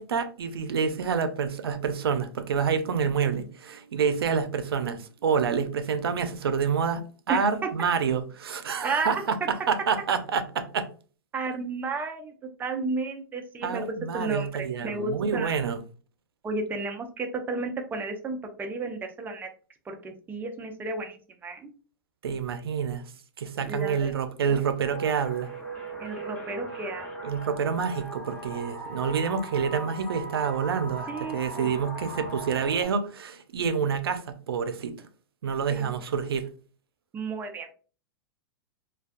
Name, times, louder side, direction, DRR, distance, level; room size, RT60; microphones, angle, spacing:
voice 1, 0.0-7.0 7.3-10.9 13.6-15.8 22.2-23.0 23.4-25.5 27.2-35.1 35.4-36.5, right 6 dB, 85° right, 0.4 m, -28 dB
voice 2, 8.8-9.2 11.3-12.3 12.6-13.9 14.1-15.6 16.4-19.5 19.9-21.6 23.7-24.1 24.5-24.6 26.0-27.1 31.1-31.7 35.7-35.9 37.1-37.7, right 3 dB, 15° right, 0.4 m, -33 dB
sound 1, 24.8-32.8, right 2 dB, 10° left, 1.0 m, -39 dB
2.3 x 2.2 x 2.5 m
hypercardioid pair, 125°, 12 cm